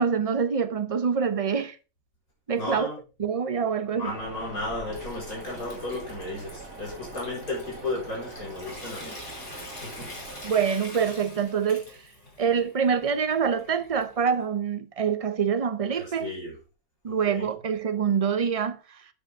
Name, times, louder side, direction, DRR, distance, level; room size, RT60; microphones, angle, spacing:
voice 1, 0.0-1.8 2.5-2.9 3.2-4.1 10.4-11.9 12.4-16.3 17.0-18.8, right 6 dB, 45° right, 0.4 m, -25 dB
voice 2, 2.5-3.0 3.9-9.2 9.7-10.1 16.0-16.6 17.1-17.5, left 2 dB, 85° left, 4.8 m, -34 dB
sound 1, 4.0-10.5, right 3 dB, 65° right, 2.2 m, -43 dB
Water tap faucet / Sink (filling or washing) / Trickle dribble, 4.5-14.4, left 1 dB, 55° left, 3.6 m, -45 dB
9.0 x 7.9 x 3.5 m
omnidirectional pair, 1.5 m